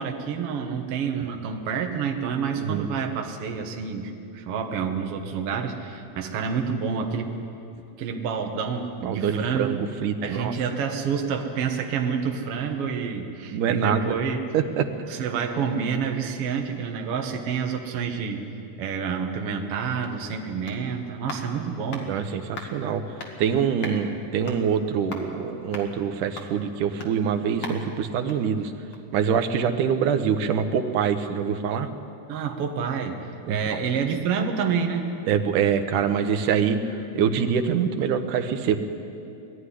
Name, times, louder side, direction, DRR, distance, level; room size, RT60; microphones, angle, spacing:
voice 1, 0.0-7.3 8.0-9.7 10.2-14.4 15.1-18.5 18.8-22.1 32.3-35.1, right 6 dB, 55° right, 3 dB, 1.9 m, -28 dB
voice 2, 2.5-2.9 9.0-10.5 13.5-14.0 14.5-14.9 22.1-23.0 23.4-28.7 29.1-31.9 33.5-33.8 35.3-36.8 37.2-38.8, right 7 dB, 80° right, 7 dB, 2.5 m, -24 dB
sound 1, 19.6-29.2 29.5-29.6, left 3 dB, 45° left, 2.3 m, -41 dB
20.5 x 13.0 x 10.0 m, 2.7 s
omnidirectional pair, 3.7 m